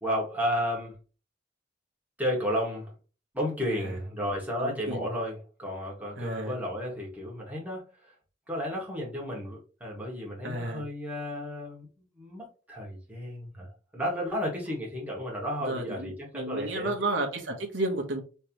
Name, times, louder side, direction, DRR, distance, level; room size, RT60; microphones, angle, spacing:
voice 1, 0.0-1.0 2.2-2.9 3.3-7.8 8.5-11.9 12.2-16.9, equal, 10° right, -4 dB, 1.7 m, -33 dB
voice 2, 4.6-5.1 6.2-6.6 10.4-10.8 15.6-18.2, right 2 dB, 80° right, 2 dB, 1.1 m, -32 dB
3.3 x 3.2 x 2.9 m, 0.35 s
head